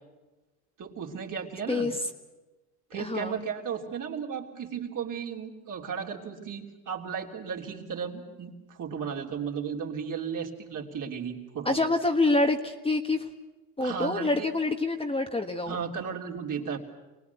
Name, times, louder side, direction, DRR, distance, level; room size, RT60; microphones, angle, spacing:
voice 1, 0.8-1.9 2.9-11.8 13.8-14.5 15.7-16.8, right 7 dB, 45° right, 0 dB, 3.5 m, -35 dB
voice 2, 1.7-2.0 3.0-3.4 11.6-13.3 13.8-15.8, left 2 dB, 10° left, 4 dB, 1.4 m, -26 dB
24.5 x 19.0 x 8.3 m, 1.1 s
supercardioid pair, 90°, 44 cm